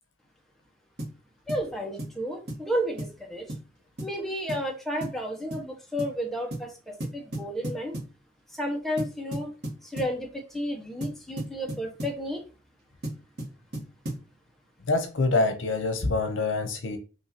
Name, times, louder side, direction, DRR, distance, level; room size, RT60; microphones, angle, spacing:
sound 1, 1.0-1.2 1.5-1.7 2.0-2.2 2.5-2.7 3.0-3.2 3.5-3.7 4.0-4.2 4.5-4.7 5.0-5.2 5.5-5.7 6.0-6.2 6.5-6.7 7.0-8.2 9.0-10.2 11.0-12.2 13.0-14.3, right 1 dB, 60° right, 1.4 m, -35 dB
voice 1, 1.5-3.5 4.0-8.0 8.6-9.5 9.8-12.5, equal, ahead, 1.0 m, -32 dB
voice 2, 14.9-17.0, left 3 dB, 90° left, 0.8 m, -25 dB
6.0 x 2.7 x 2.9 m
head